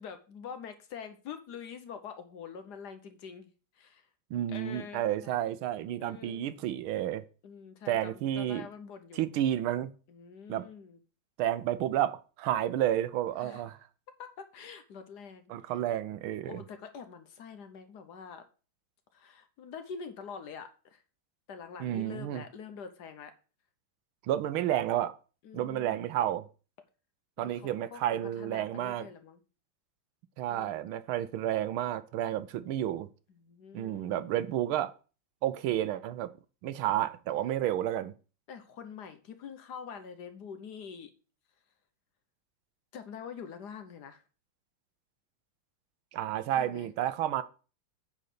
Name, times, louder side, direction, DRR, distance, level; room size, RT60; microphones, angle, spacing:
voice 1, 0.0-4.1 4.5-5.3 6.0-6.4 7.4-9.3 10.1-11.0 13.4-13.6 14.2-15.4 16.4-18.4 19.1-21.0 21.5-23.3 25.4-26.0 27.4-29.4 30.5-30.8 33.3-34.4 38.5-41.1 42.9-44.2 46.6-46.9, left 6 dB, 60° left, 1.3 m, -45 dB
voice 2, 4.3-7.2 7.9-8.7 9.1-9.9 10.5-10.7 11.4-13.8 15.5-16.6 21.8-22.4 24.3-25.1 25.5-26.4 27.4-29.1 30.4-33.1 33.7-34.9 35.4-36.3 36.6-38.1 46.1-47.4, right 12 dB, 85° right, 1.5 m, -31 dB
9.1 x 4.0 x 6.7 m
omnidirectional pair, 2.2 m